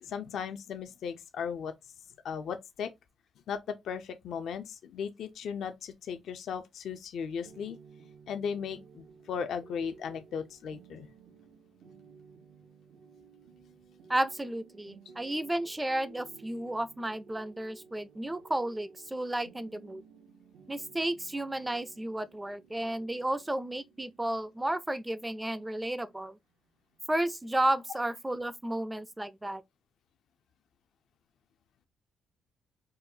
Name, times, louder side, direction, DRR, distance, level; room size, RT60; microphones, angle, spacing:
voice 1, 0.0-1.7 2.2-2.9 3.5-7.8 8.3-11.1, left 7 dB, 70° left, 0.4 m, -36 dB
sound 1, 7.4-27.0, right 6 dB, 75° right, 0.5 m, -56 dB
voice 2, 14.1-20.0 20.7-26.4 27.1-29.6, right 1 dB, 10° right, 0.4 m, -32 dB
3.8 x 2.2 x 2.6 m
cardioid pair, 90°, 0 cm